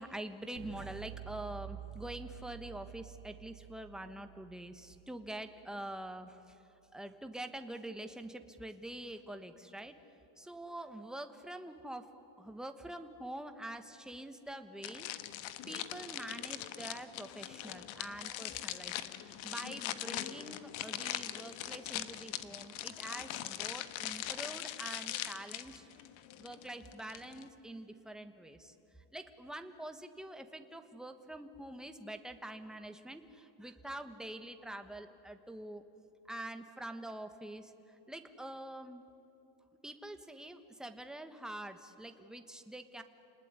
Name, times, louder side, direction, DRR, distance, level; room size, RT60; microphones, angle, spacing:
voice 1, 0.0-6.6 6.9-10.0 10.4-12.1 12.4-15.1 15.7-25.9 26.4-35.9 36.2-39.0 39.8-43.0, right 1 dB, ahead, 7 dB, 1.3 m, -45 dB
sound 1, 0.6-6.5, right 11 dB, 75° right, 3.5 m, -50 dB
sound 2, 14.8-27.5, left 13 dB, 70° left, 1.5 m, -41 dB
29.5 x 19.5 x 9.8 m, 3.0 s
cardioid pair, 155°, 48 cm